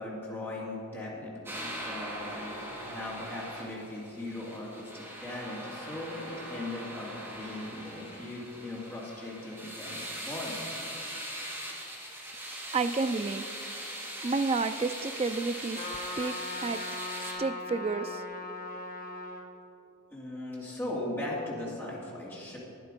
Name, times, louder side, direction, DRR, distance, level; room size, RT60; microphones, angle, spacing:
voice 1, 0.0-10.6 20.1-22.6, left 1 dB, 10° left, -6 dB, 2.4 m, -39 dB
sound 1, 1.5-17.3, right 1 dB, 10° right, 2.0 m, -41 dB
voice 2, 12.7-13.4 14.2-15.8 16.2-16.3 16.6-16.8 17.4-18.2, right 4 dB, 25° right, 10 dB, 0.3 m, -30 dB
Trumpet, 15.7-19.4, left 2 dB, 40° left, 1.1 m, -39 dB
12.0 x 9.6 x 5.2 m, 2.8 s
head